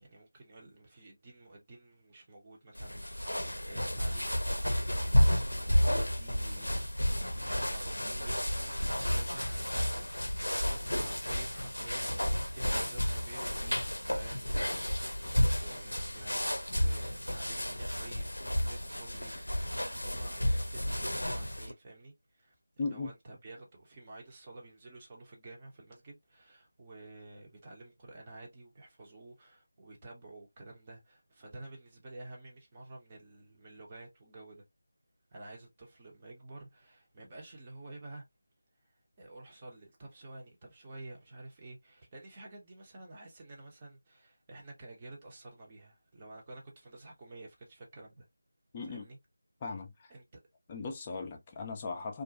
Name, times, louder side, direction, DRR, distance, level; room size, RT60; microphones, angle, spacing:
voice 1, 0.0-3.0 3.2-34.6 35.3-38.2 38.8-48.3 48.8-49.2 50.1-50.4, right 2 dB, 25° right, 0.7 m, -51 dB
sound 1, 2.8-21.7, equal, 85° left, 0.5 m, -31 dB
voice 2, 22.8-23.1 48.7-49.1 49.6-50.1 50.7-52.2, left 4 dB, 20° left, 0.4 m, -38 dB
2.4 x 2.1 x 2.6 m
figure-of-eight pair, 165°, 0 cm